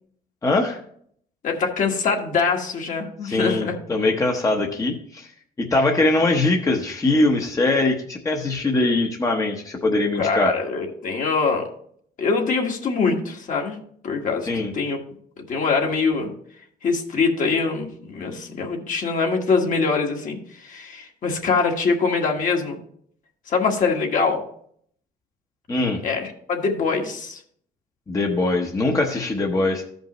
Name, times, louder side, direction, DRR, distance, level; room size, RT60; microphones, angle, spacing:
voice 1, 0.4-0.8 3.2-5.3 5.6-10.5 14.5-14.7 25.7-26.0 28.1-29.8, left 2 dB, 20° left, 1 dB, 0.9 m, -22 dB
voice 2, 1.4-3.8 10.2-11.7 12.2-13.8 14.0-15.0 15.4-16.3 16.8-22.8 23.5-24.4 26.0-27.4, left 4 dB, 50° left, 1 dB, 1.6 m, -23 dB
14.0 x 5.3 x 3.1 m, 0.63 s
cardioid pair, 110°, 17 cm